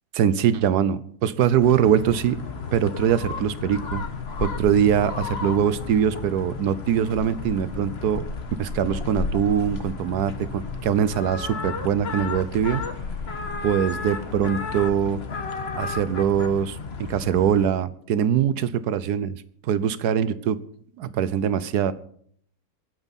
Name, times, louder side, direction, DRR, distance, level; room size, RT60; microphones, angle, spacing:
voice 1, 0.1-2.4 2.7-4.1 4.4-8.3 8.6-12.9 13.6-15.2 15.7-19.4 19.6-20.6 21.0-21.9, right 8 dB, 80° right, 15 dB, 1.3 m, -23 dB
sound 1, 1.6-17.7, left 4 dB, 45° left, 1.4 m, -33 dB
26.5 x 9.1 x 4.2 m, 0.64 s
omnidirectional pair, 1.7 m